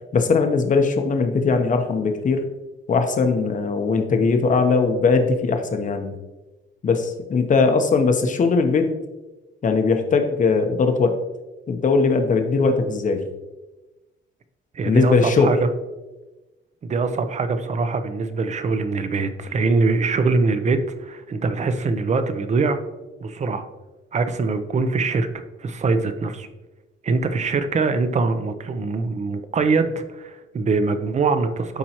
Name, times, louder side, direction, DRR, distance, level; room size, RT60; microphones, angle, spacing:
voice 1, 0.1-2.4 2.9-6.1 6.8-8.9 9.6-11.2 11.7-13.2 14.8-15.5, left 4 dB, 40° left, 6 dB, 0.8 m, -20 dB
voice 2, 14.7-15.7 16.8-22.8 23.2-23.6 24.1-25.3 25.6-26.5 27.0-31.8, right 4 dB, 35° right, 10 dB, 0.6 m, -23 dB
12.0 x 4.4 x 2.9 m, 1.1 s
cardioid pair, 145°, 20 cm